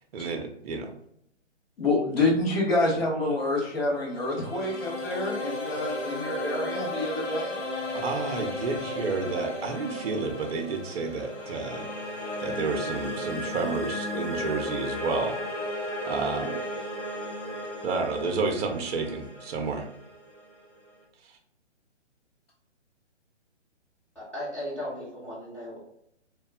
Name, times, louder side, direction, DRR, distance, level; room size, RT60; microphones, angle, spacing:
voice 1, 0.1-0.9 7.9-11.9 12.4-15.4 16.0-16.5 17.8-19.8, right 4 dB, 55° right, 3 dB, 0.5 m, -30 dB
voice 2, 1.8-7.5, left 2 dB, 55° left, -4 dB, 1.4 m, -27 dB
sound 1, 3.8-20.9, left 1 dB, 75° left, 1.1 m, -35 dB
voice 3, 24.1-25.8, left 1 dB, 5° left, -11 dB, 0.7 m, -36 dB
2.9 x 2.3 x 2.2 m, 0.74 s
figure-of-eight pair, 140°, 36 cm